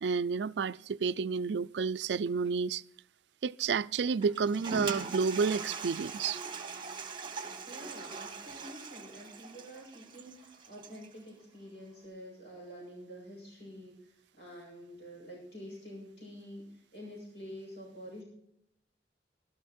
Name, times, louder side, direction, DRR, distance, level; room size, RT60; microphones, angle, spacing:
voice 1, 0.0-2.8 3.4-6.4, right 5 dB, 75° right, 0.4 m, -30 dB
Toilet flush, 4.2-11.1, right 4 dB, 30° right, 1.2 m, -41 dB
voice 2, 7.7-18.2, equal, 70° left, 6.6 m, -48 dB
15.0 x 12.5 x 4.3 m
head